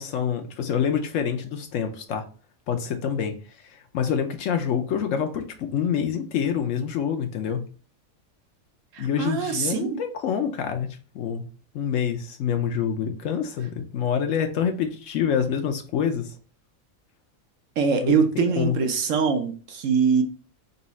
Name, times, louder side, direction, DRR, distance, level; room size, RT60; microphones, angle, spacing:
voice 1, 0.0-2.2 2.7-3.3 3.6-7.6 9.0-10.9 11.1-11.4 11.7-16.3 18.0-18.7, left 8 dB, 70° left, 5 dB, 0.9 m, -26 dB
voice 2, 8.9-10.0 17.8-20.2, right 5 dB, 70° right, 6 dB, 1.0 m, -23 dB
4.1 x 2.3 x 4.0 m, 0.38 s
omnidirectional pair, 1.5 m